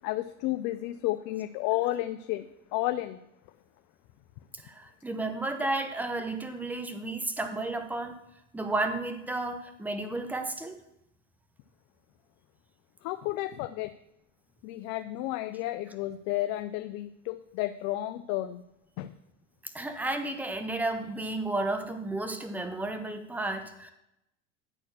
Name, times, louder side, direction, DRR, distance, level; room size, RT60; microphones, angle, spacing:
voice 1, 0.0-2.5 2.7-3.2 13.0-13.9 14.6-18.6 19.0-19.1, left 16 dB, 50° left, 10 dB, 0.6 m, -32 dB
voice 2, 4.6-8.2 8.5-10.8 19.6-23.9, right 2 dB, 5° right, 8 dB, 0.9 m, -32 dB
10.5 x 4.2 x 6.5 m, 0.85 s
hypercardioid pair, 80°, 38 cm